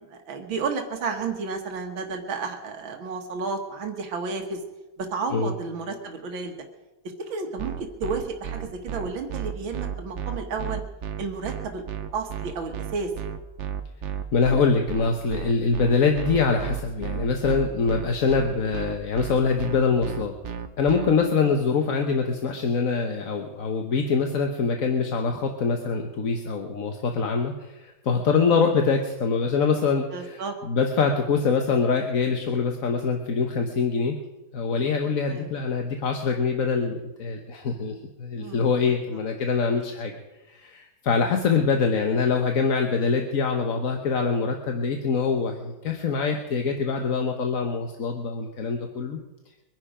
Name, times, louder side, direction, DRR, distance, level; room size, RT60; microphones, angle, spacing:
voice 1, 0.0-4.6 5.0-6.5 7.3-7.7 8.0-10.8 11.2-11.8 12.1-13.1 14.4-14.5 21.4-21.5 28.5-28.6 30.1-30.5 35.3-35.5 38.4-38.7, right 4 dB, 90° right, 4 dB, 2.2 m, -32 dB
sound 1, 7.6-21.1, right 8 dB, 55° right, 0.8 m, -33 dB
voice 2, 14.3-20.3 20.8-34.2 34.5-40.1 40.5-49.2, left 5 dB, 50° left, 3 dB, 1.4 m, -24 dB
23.5 x 10.5 x 5.0 m, 1.1 s
omnidirectional pair, 2.1 m